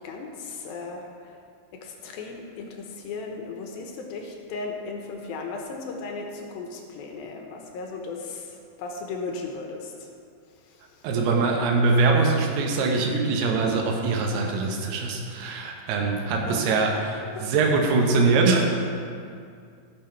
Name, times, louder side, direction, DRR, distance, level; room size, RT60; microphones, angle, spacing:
voice 1, 0.0-1.4 1.8-10.1 10.5-11.1 16.5-17.0 17.4-17.5 18.2-18.3, left 4 dB, 75° left, 2 dB, 2.5 m, -36 dB
voice 2, 11.0-18.7, right 3 dB, 80° right, 1 dB, 3.1 m, -23 dB
16.5 x 5.9 x 4.5 m, 2.3 s
omnidirectional pair, 4.7 m